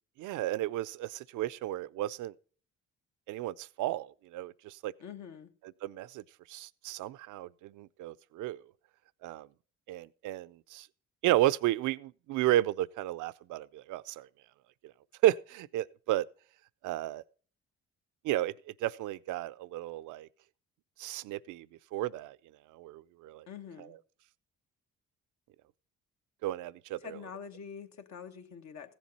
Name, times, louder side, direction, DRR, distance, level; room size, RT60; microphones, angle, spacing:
voice 1, 0.2-2.3 3.3-4.9 5.8-8.6 9.2-9.5 9.9-10.9 11.2-14.3 15.2-16.3 16.8-17.2 18.2-18.5 18.8-20.3 21.0-21.7 21.9-22.4 22.7-23.4 26.4-27.0, right 15 dB, 80° right, 0.5 m, -32 dB
voice 2, 5.0-5.5 23.5-24.0 27.0-28.9, left 7 dB, 65° left, 1.2 m, -45 dB
15.0 x 7.4 x 4.0 m
cardioid pair, 90°, 30 cm